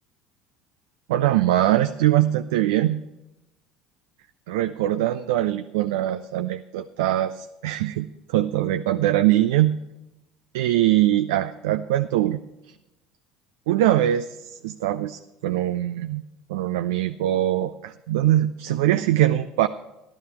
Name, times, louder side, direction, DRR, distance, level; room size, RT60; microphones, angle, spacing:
voice 1, 1.1-3.0 4.5-9.8 10.5-12.4 12.7-12.8 13.7-16.2 16.5-19.7, right 13 dB, 70° right, 10 dB, 0.4 m, -22 dB
13.0 x 12.0 x 4.3 m, 0.96 s
figure-of-eight pair, 65°, 2 cm